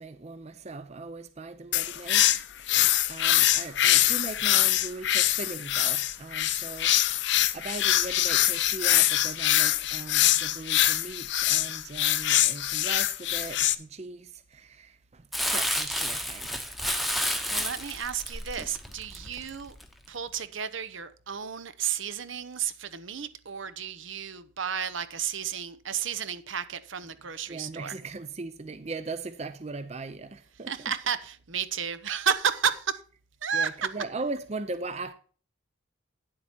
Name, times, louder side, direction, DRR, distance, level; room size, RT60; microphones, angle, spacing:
voice 1, 0.0-2.4 2.7-16.6 27.5-30.9 33.5-35.1, right 3 dB, 30° right, 0.5 m, -39 dB
sound 1, 1.7-13.7, left 13 dB, 60° left, 0.6 m, -24 dB
Crumpling crinkling, 15.3-19.8 20.3-20.4, equal, ahead, 0.9 m, -30 dB
voice 2, 17.1-19.8 20.1-27.9 30.7-33.0 33.4-33.9, right 7 dB, 70° right, 0.8 m, -32 dB
10.0 x 7.6 x 4.4 m
head